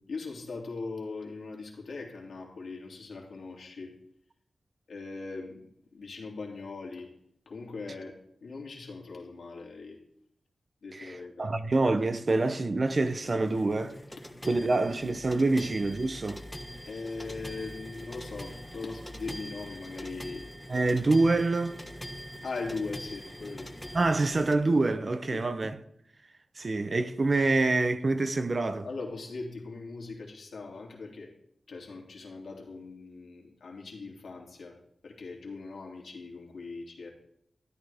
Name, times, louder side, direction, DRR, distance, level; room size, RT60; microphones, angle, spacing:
voice 1, 0.1-3.9 4.9-5.6 5.9-7.1 7.5-8.1 8.4-10.0 10.8-11.5 16.9-20.4 22.4-23.7 25.3-25.4 28.7-31.3 31.7-34.8 35.0-37.1, left 3 dB, 85° left, 2.8 m, -40 dB
voice 2, 10.9-13.9 14.5-16.4 20.7-21.8 23.9-25.8 26.6-28.9, right 3 dB, 40° right, 0.7 m, -26 dB
sound 1, 12.8-24.5, equal, 5° left, 1.0 m, -43 dB
13.0 x 12.0 x 3.5 m
wide cardioid pair, 145°, 0 cm